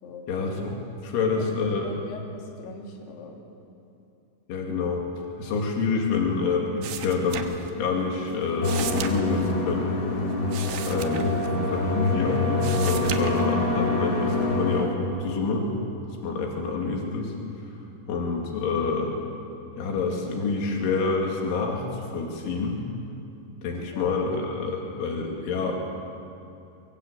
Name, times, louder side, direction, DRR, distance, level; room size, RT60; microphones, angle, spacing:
voice 1, 0.3-0.7 1.0-2.0 4.5-5.0 5.4-9.9 10.9-11.3 11.7-15.7 16.2-17.3 18.1-19.2 19.8-22.8 23.6-25.8, left 4 dB, 90° left, 0 dB, 4.9 m, -27 dB
voice 2, 1.1-3.3 10.9-11.2 23.9-24.2, left 2 dB, 60° left, 0 dB, 4.9 m, -41 dB
sound 1, 6.8-8.0 8.3-12.1 12.4-13.9 14.3-14.9, right 9 dB, 70° right, 3.1 m, -36 dB
sound 2, 8.6-14.8, left 2 dB, 30° left, 3.0 m, -25 dB
24.0 x 23.0 x 8.2 m, 2.7 s
omnidirectional pair, 5.3 m